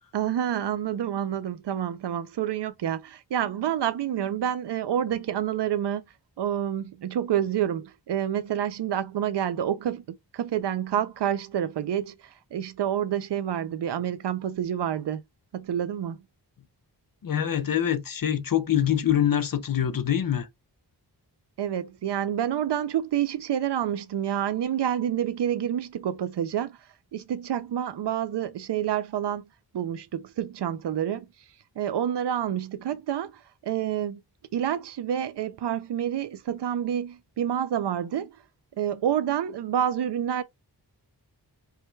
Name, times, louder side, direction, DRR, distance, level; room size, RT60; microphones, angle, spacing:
voice 1, 0.1-6.0 6.4-10.0 10.3-15.2 15.5-16.2 21.6-26.8 27.1-29.4 29.7-31.3 31.8-34.2 34.5-38.4 38.8-40.4, right 10 dB, 85° right, 0.5 m, -28 dB
voice 2, 17.2-20.5, left 10 dB, 55° left, 0.7 m, -24 dB
4.7 x 2.2 x 4.4 m
wide cardioid pair, 110°, 40 cm